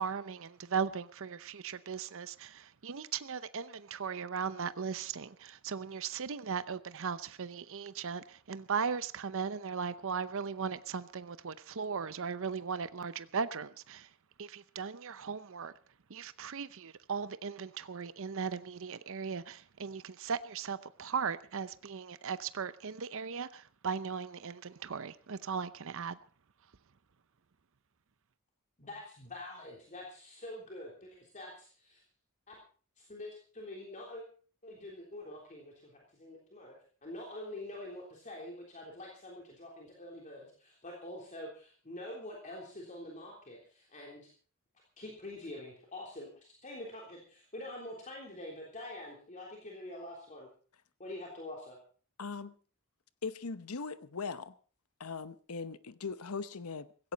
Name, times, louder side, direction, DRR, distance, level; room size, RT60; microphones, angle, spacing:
voice 1, 0.0-14.1 14.4-15.7 16.1-26.2, right 6 dB, 65° right, 0.7 m, -37 dB
voice 2, 28.8-30.9 31.2-31.7 32.5-32.6 33.0-34.3 34.6-36.7 37.0-44.3 45.0-50.5 51.0-51.8, left 1 dB, 35° left, 3.5 m, -46 dB
voice 3, 52.2-52.5 53.2-54.6 55.0-57.1, left 4 dB, 85° left, 0.9 m, -40 dB
16.5 x 16.0 x 4.1 m
head